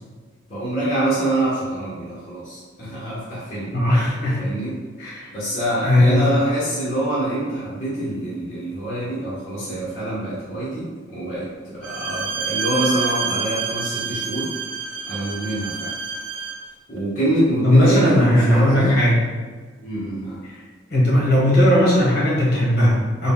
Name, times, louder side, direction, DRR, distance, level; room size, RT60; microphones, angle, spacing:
voice 1, 0.5-3.7 4.4-4.7 5.3-14.5 15.1-15.9 16.9-18.9 19.8-20.4, right 1 dB, 40° left, -9 dB, 1.0 m, -25 dB
voice 2, 3.7-4.4 5.0-5.3 5.8-6.4 17.6-19.2 20.4-20.6 20.9-23.3, left 1 dB, 55° left, -7 dB, 1.2 m, -17 dB
Bowed string instrument, 11.8-16.7, right 5 dB, 70° right, 0.5 m, -28 dB
3.8 x 2.2 x 3.6 m, 1.4 s
head